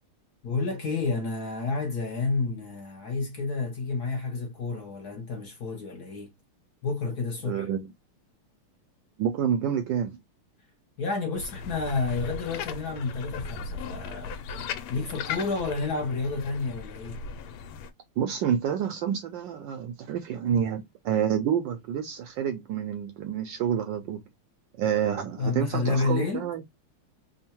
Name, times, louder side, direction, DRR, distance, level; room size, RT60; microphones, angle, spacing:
voice 1, 0.4-6.3 6.8-7.7 11.0-14.4 14.9-17.2 25.4-26.5, left 4 dB, 60° left, 1.1 m, -30 dB
voice 2, 7.4-7.9 9.2-10.2 18.2-24.2 24.8-26.6, right 8 dB, 75° right, 1.1 m, -28 dB
sound 1, 11.4-17.9, left 6 dB, 85° left, 1.5 m, -37 dB
3.6 x 2.1 x 4.3 m
omnidirectional pair, 2.4 m